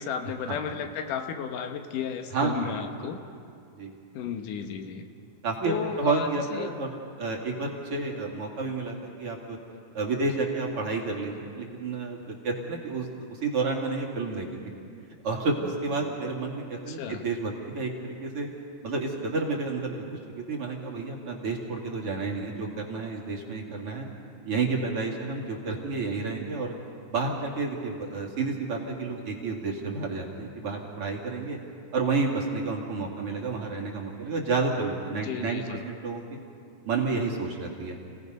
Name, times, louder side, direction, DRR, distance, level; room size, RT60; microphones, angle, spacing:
voice 1, 0.0-3.2 4.1-5.0 5.6-6.7 16.9-17.2 35.1-35.9, left 7 dB, 85° left, 5 dB, 2.7 m, -33 dB
voice 2, 2.3-2.7 3.8-3.9 5.4-6.9 7.2-9.6 9.9-14.6 15.2-18.5 18.8-24.1 24.4-26.7 27.1-31.6 31.9-36.2 36.8-38.0, right 3 dB, 50° right, -1 dB, 2.8 m, -30 dB
29.0 x 17.5 x 5.4 m, 2.4 s
omnidirectional pair, 3.6 m